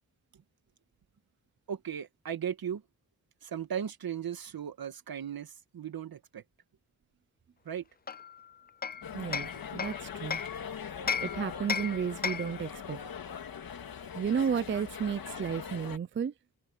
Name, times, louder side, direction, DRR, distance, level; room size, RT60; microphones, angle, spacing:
voice 1, 1.7-2.8 3.4-6.4 7.7-7.9, right 8 dB, 70° right, 2.0 m, -37 dB
Hammer, 8.1-10.6 11.1-12.6, left 6 dB, 25° left, 0.4 m, -35 dB
sound 1, 9.0-16.0, left 7 dB, 70° left, 2.0 m, -41 dB
voice 2, 9.1-10.4 11.2-13.0 14.1-16.3, right 7 dB, 35° right, 0.4 m, -33 dB
wide cardioid pair, 110°, 37 cm